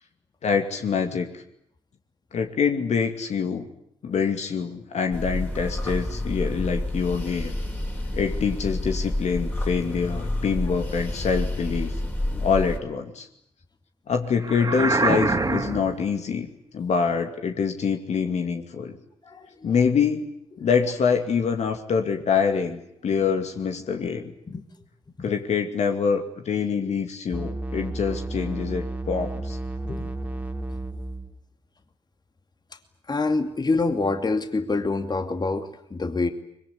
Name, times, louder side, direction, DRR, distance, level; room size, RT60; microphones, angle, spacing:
voice 1, 0.4-1.4 2.3-3.7 4.0-7.6 8.1-12.0 12.4-13.3 14.1-16.5 16.7-19.0 19.6-20.3 20.6-24.3 25.2-29.6, left 6 dB, 55° left, 5 dB, 2.5 m, -25 dB
sound 1, 5.1-12.8, left 1 dB, 15° left, 4.5 m, -29 dB
sound 2, 14.4-16.0, right 3 dB, 25° right, 3.1 m, -24 dB
voice 2, 19.2-19.7 24.0-24.1 24.5-24.6 25.2-25.3 29.8-30.1 30.7-30.8 33.1-36.3, left 3 dB, 30° left, 7 dB, 2.6 m, -27 dB
sound 3, 27.3-31.4, right 2 dB, 10° right, 2.4 m, -32 dB
24.0 x 22.5 x 9.8 m, 0.73 s
hypercardioid pair, 40°, 14 cm